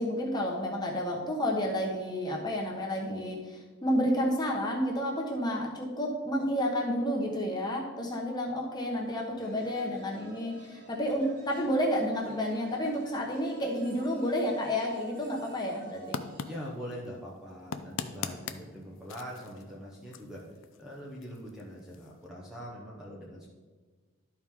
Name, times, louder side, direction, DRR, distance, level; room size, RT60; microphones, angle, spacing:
voice 1, 0.0-16.2, equal, 20° left, -1 dB, 1.2 m, -30 dB
sound 1, 8.9-16.7, right 1 dB, 40° right, 1.4 m, -52 dB
sound 2, 16.0-22.3, left 6 dB, 60° left, 0.4 m, -43 dB
voice 2, 16.5-23.5, equal, ahead, -5 dB, 0.9 m, -43 dB
12.5 x 4.6 x 3.6 m, 1.4 s
head